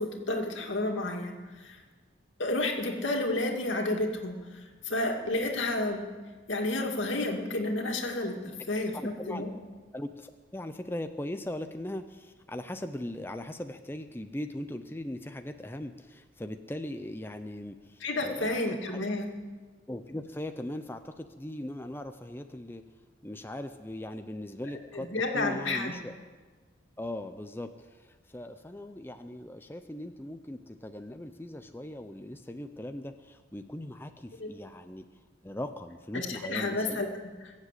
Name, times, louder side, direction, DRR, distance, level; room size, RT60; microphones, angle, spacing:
voice 1, 0.0-1.8 2.4-6.0 6.5-9.5 18.0-19.3 24.9-25.9 34.4-34.5 36.1-37.1 37.4-37.5, left 2 dB, 85° left, 2 dB, 2.2 m, -31 dB
voice 2, 8.9-9.5 9.9-19.0 19.9-22.8 23.2-25.1 25.3-26.1 27.0-35.0 35.4-37.0, left 1 dB, 10° left, 7 dB, 0.5 m, -39 dB
22.5 x 7.5 x 8.2 m, 1.4 s
head